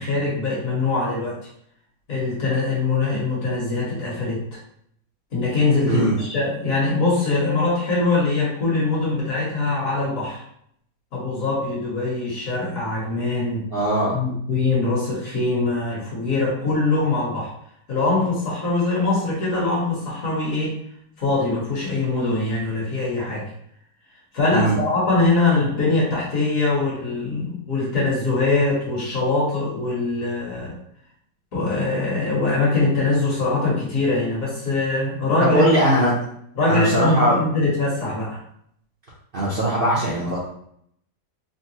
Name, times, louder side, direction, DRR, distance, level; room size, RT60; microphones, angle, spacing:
voice 1, 0.0-1.4 2.1-4.6 5.3-10.4 11.1-13.7 14.1-17.5 17.9-20.8 21.2-23.5 24.3-30.7 31.5-35.7 36.5-38.4, left 3 dB, 60° left, -4 dB, 1.5 m, -22 dB
voice 2, 13.7-14.2 24.5-24.8 35.4-36.1 36.7-37.4 39.3-40.4, right 1 dB, 50° right, -6 dB, 0.7 m, -20 dB
3.8 x 2.1 x 2.7 m, 0.69 s
omnidirectional pair, 1.7 m